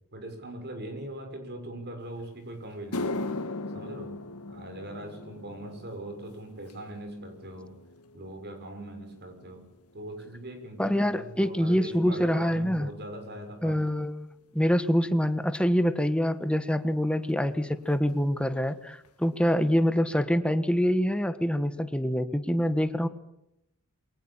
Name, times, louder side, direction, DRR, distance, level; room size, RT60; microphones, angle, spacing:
voice 1, 0.1-3.2 3.7-4.2 4.5-7.7 8.1-9.7 9.9-13.8, right 1 dB, 50° right, 6 dB, 6.7 m, -41 dB
sound 1, 2.2-2.3 2.7-11.2 11.5-12.0 12.7-12.8 15.6-15.7 17.3-17.4 17.6-17.8 18.1-18.6 19.0-19.1 19.7-19.8, left 2 dB, 85° left, 1.7 m, -40 dB
voice 2, 10.8-12.9 13.6-23.1, equal, 5° left, 10 dB, 1.5 m, -25 dB
28.5 x 24.0 x 7.5 m, 0.83 s
head